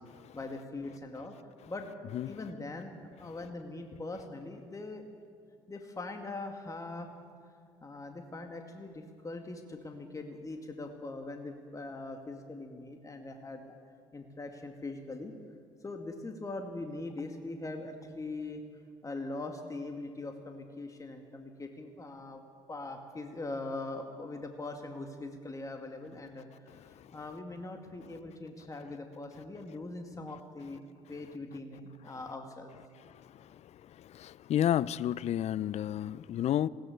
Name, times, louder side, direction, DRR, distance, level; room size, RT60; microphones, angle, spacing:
voice 1, 0.3-1.3 1.7-1.9 2.3-2.9 3.2-5.0 5.7-7.1 7.8-13.8 14.1-15.3 15.8-18.6 19.0-22.4 22.7-30.8 31.1-32.8, left 2 dB, 25° left, 4 dB, 2.2 m, -41 dB
voice 2, 34.1-36.7, left 11 dB, 55° left, 21 dB, 0.5 m, -30 dB
20.5 x 16.5 x 8.0 m, 2.2 s
hypercardioid pair, 60°, 14 cm